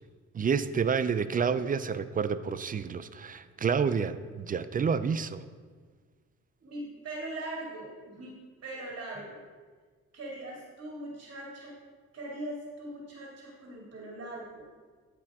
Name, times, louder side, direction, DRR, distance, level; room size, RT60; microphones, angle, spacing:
voice 1, 0.3-5.4, right 6 dB, 30° right, 13 dB, 0.4 m, -29 dB
voice 2, 6.6-9.4 10.1-11.8 12.1-14.7, right 1 dB, 50° right, -3 dB, 2.3 m, -41 dB
13.5 x 5.0 x 3.6 m, 1.5 s
cardioid pair, 90°, 30 cm